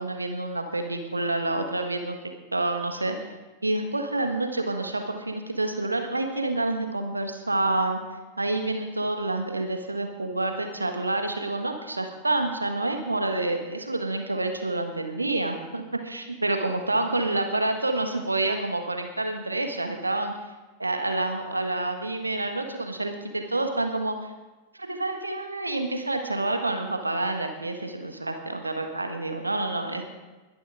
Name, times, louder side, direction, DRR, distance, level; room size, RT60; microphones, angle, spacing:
voice 1, 0.0-3.2 3.6-8.0 8.4-20.3 20.8-24.3 24.7-30.0, right 2 dB, 80° right, 5 dB, 1.5 m, -28 dB
21.5 x 11.0 x 3.8 m, 1.2 s
figure-of-eight pair, 90°, 0 cm